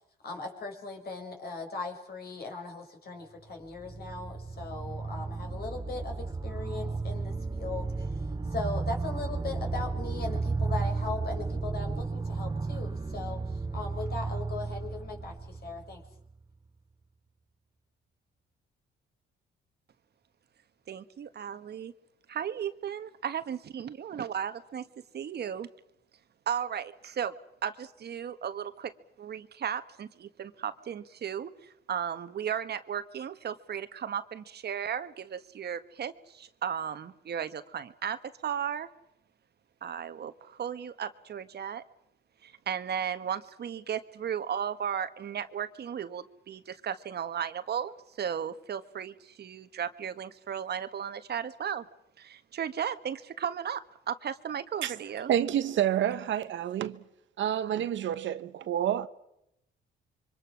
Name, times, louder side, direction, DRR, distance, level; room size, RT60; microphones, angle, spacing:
voice 1, 0.2-8.3 8.5-16.0, left 3 dB, 50° left, 5.8 m, -39 dB
sound 1, 3.5-16.3, right 3 dB, 20° right, 0.8 m, -34 dB
voice 2, 20.9-21.9 22.3-24.9 25.1-25.7 26.5-27.4 27.6-28.9 29.2-38.9 39.8-41.8 42.4-51.9 52.2-55.3, right 8 dB, 55° right, 1.4 m, -35 dB
voice 3, 55.3-57.0 57.4-59.1, right 10 dB, 70° right, 1.2 m, -28 dB
27.5 x 24.5 x 6.3 m
cardioid pair, 90°, 20 cm